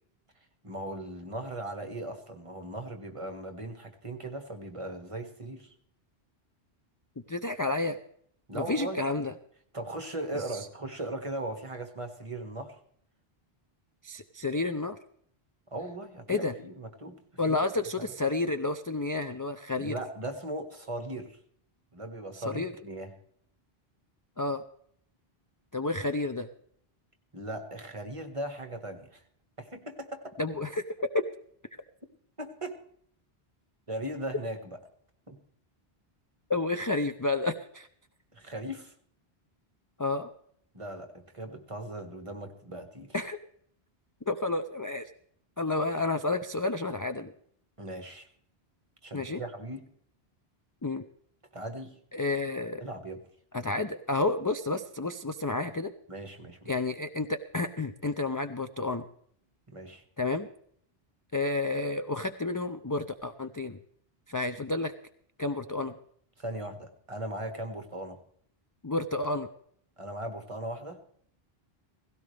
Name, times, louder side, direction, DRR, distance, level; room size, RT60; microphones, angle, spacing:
voice 1, 0.6-5.7 8.5-9.0 9.7-12.8 15.7-17.2 17.5-17.6 18.0-18.1 19.8-21.4 21.9-23.2 27.3-29.2 29.6-30.4 32.4-32.8 33.9-34.8 35.3-35.4 38.3-38.9 40.7-43.2 47.8-48.3 49.0-49.9 51.5-52.0 52.8-53.2 56.1-56.7 59.7-60.0 66.4-68.2 70.0-71.0, right 1 dB, 30° right, 6 dB, 1.7 m, -38 dB
voice 2, 7.3-8.0 8.5-9.3 10.5-10.6 14.0-15.0 16.3-16.5 17.4-20.0 22.4-22.7 24.4-24.6 25.7-26.5 30.4-31.2 36.5-37.9 40.0-40.3 43.1-43.4 44.3-45.1 45.6-47.3 49.1-49.4 50.8-51.0 52.1-52.8 53.5-55.9 56.7-59.1 60.2-60.5 61.3-63.8 64.3-64.9 65.4-65.9 68.8-69.5, left 3 dB, 25° left, 9 dB, 0.5 m, -30 dB
17.5 x 16.5 x 3.4 m, 0.64 s
omnidirectional pair, 1.1 m